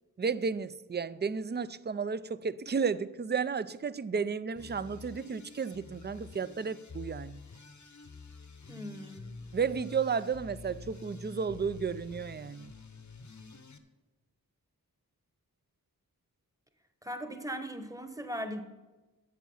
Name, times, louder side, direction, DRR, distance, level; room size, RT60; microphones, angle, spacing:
voice 1, 0.2-7.4 9.5-12.7, right 5 dB, 30° right, 0.4 m, -33 dB
sound 1, 4.5-13.8, left 4 dB, 50° left, 0.8 m, -48 dB
voice 2, 8.7-9.3 17.0-18.6, equal, 10° right, 1.0 m, -39 dB
12.0 x 7.1 x 5.6 m
wide cardioid pair, 45°, 38 cm